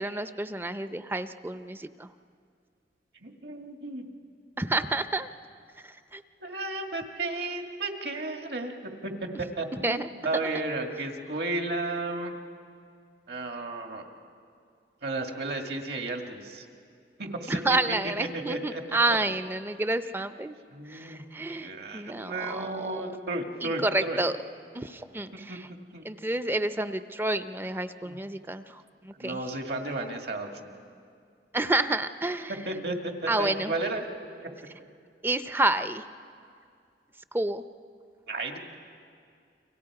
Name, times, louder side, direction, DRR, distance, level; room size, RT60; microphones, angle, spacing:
voice 1, 0.0-2.1 4.6-5.3 6.1-6.2 9.8-10.1 17.5-20.5 20.9-23.0 23.6-24.3 24.7-25.6 26.0-28.6 29.0-29.4 31.5-32.5 33.3-33.7 35.2-36.0 37.3-37.6, right 2 dB, 10° right, 11 dB, 0.5 m, -29 dB
voice 2, 3.2-4.1 6.4-12.3 13.3-14.1 15.0-16.7 17.2-17.8 18.3-19.2 20.7-24.2 25.5-25.6 25.9-26.0 28.0-28.2 29.2-30.7 32.5-34.1 34.4-34.5 38.3-38.6, right 2 dB, 65° right, 3 dB, 2.1 m, -33 dB
30.0 x 24.5 x 4.9 m, 2.3 s
head